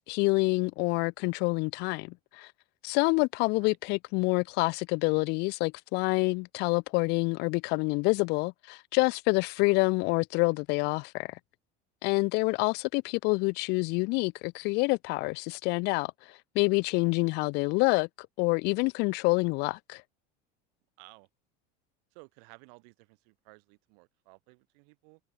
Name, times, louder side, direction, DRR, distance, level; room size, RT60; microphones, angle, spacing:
voice 1, 0.0-2.5 2.8-11.4 12.0-16.1 16.5-20.0, left 27 dB, 55° left, 0.6 m, -27 dB
voice 2, 21.0-21.3 22.1-25.2, right 37 dB, 70° right, 4.3 m, -56 dB
cardioid pair, 160°, 21 cm